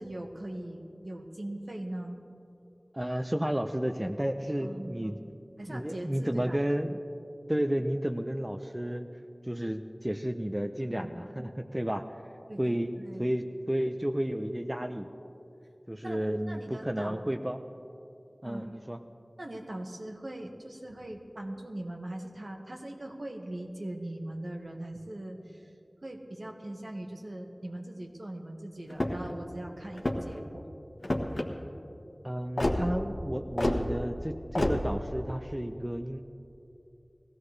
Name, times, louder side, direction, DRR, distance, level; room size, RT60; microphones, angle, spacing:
voice 1, 0.0-2.2 4.6-5.2 5.6-6.6 10.9-11.4 12.5-13.2 16.0-17.2 18.4-18.6 19.4-25.7 26.0-30.7, right 1 dB, 65° right, 1 dB, 1.4 m, -40 dB
voice 2, 2.9-5.2 5.7-7.0 7.5-9.1 9.4-12.0 12.6-15.1 15.9-17.6 18.4-19.0 32.2-36.2, equal, 15° right, 7 dB, 0.5 m, -32 dB
sound 1, 28.9-29.3 29.9-30.4 31.0-31.5 32.6-32.8 33.6-33.8 34.5-34.8, left 1 dB, 75° left, 1.2 m, -28 dB
20.5 x 16.0 x 3.3 m, 2.8 s
wide cardioid pair, 50°, 0 cm